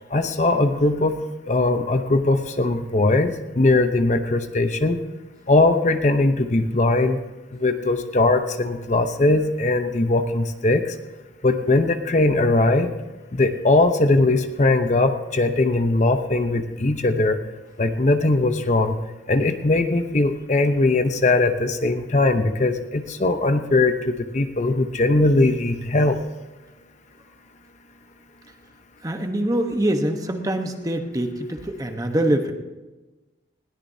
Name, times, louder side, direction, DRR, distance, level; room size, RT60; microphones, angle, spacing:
voice 1, 0.1-1.2 1.5-5.0 5.5-7.2 7.5-11.0 11.4-12.9 13.3-17.4 17.8-19.0 19.3-26.2, left 2 dB, 40° left, 7 dB, 0.8 m, -20 dB
voice 2, 29.0-32.5, right 1 dB, 20° right, 5 dB, 1.1 m, -24 dB
20.5 x 17.0 x 2.8 m, 1.1 s
head